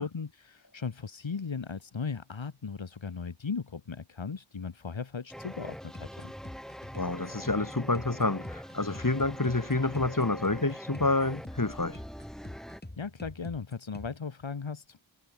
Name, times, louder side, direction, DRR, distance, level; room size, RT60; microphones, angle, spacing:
voice 1, 0.0-6.3 13.0-15.0, left 5 dB, 85° left, 2.6 m, -37 dB
sound 1, 5.3-12.8, equal, ahead, 7.4 m, -44 dB
sound 2, 5.9-14.2, left 1 dB, 20° left, 6.9 m, -45 dB
voice 2, 6.9-12.0, left 2 dB, 45° left, 7.4 m, -28 dB
wide cardioid pair, 40°, 45 cm